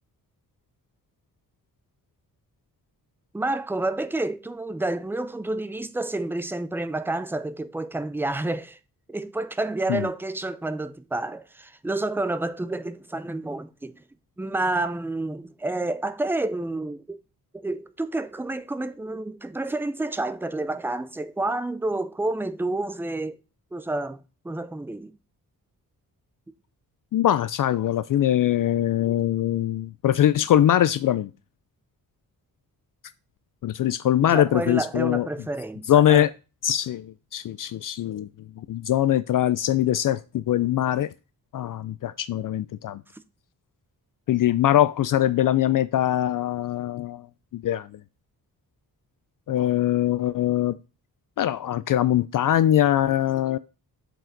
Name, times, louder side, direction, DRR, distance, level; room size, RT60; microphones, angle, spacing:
voice 1, 3.3-8.8 9.1-14.0 14.4-17.2 17.5-23.4 23.7-24.2 24.4-25.1 34.2-36.3, right 2 dB, 5° right, 0.5 m, -29 dB
voice 2, 27.1-31.3 33.6-35.3 35.9-36.3 36.6-38.3 38.6-41.1 41.5-43.0 44.3-47.3 47.5-47.9 49.5-50.8 51.4-53.6, left 12 dB, 60° left, 0.4 m, -22 dB
7.7 x 4.9 x 3.8 m
wide cardioid pair, 150°, 36 cm